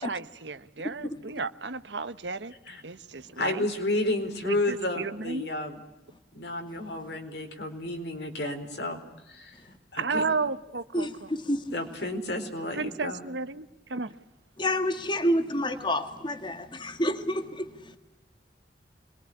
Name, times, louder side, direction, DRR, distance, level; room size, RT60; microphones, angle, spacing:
voice 1, 0.0-2.5 2.8-3.7 4.4-5.5 10.0-11.3 12.7-14.2, right 4 dB, 80° right, 1.1 m, -33 dB
voice 2, 0.8-1.2 9.6-9.8 10.9-11.8 14.6-18.0, left 1 dB, 25° left, 1.9 m, -29 dB
voice 3, 3.4-5.8 6.3-9.6 9.9-10.2 11.7-13.2, left 2 dB, 70° left, 4.4 m, -31 dB
26.5 x 22.0 x 10.0 m
head